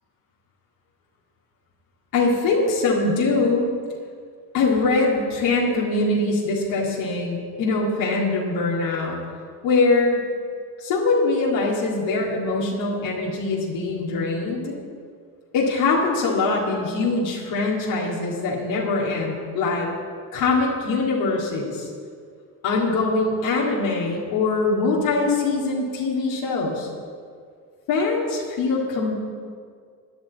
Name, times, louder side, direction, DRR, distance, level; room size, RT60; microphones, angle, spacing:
voice 1, 2.1-3.6 4.5-9.2 9.6-10.2 10.8-14.7 15.5-19.9 20.3-21.9 22.6-26.9 27.9-29.2, left 3 dB, 80° left, -4 dB, 2.2 m, -22 dB
15.5 x 9.8 x 4.1 m, 2.1 s
supercardioid pair, 70°, 45 cm